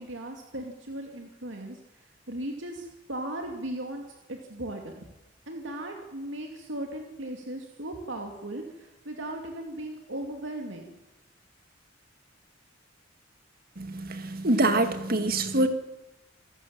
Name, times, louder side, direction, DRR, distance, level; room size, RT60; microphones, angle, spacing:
voice 1, 0.0-4.0 4.3-5.0 5.5-11.0, right 1 dB, 80° right, 3 dB, 2.6 m, -37 dB
voice 2, 13.8-15.7, right 2 dB, 55° right, 8 dB, 2.2 m, -25 dB
27.5 x 13.5 x 8.9 m, 1.0 s
head